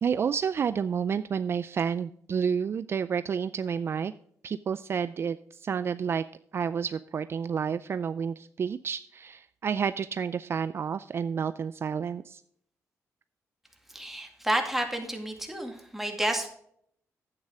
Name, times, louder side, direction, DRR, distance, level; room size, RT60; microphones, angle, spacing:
voice 1, 0.0-4.1 4.4-6.3 6.5-12.4, right 7 dB, 45° right, 13 dB, 0.4 m, -30 dB
voice 2, 13.9-16.5, right 1 dB, 5° right, 2 dB, 2.2 m, -30 dB
10.5 x 8.9 x 3.5 m, 0.68 s
cardioid pair, 105°, 6 cm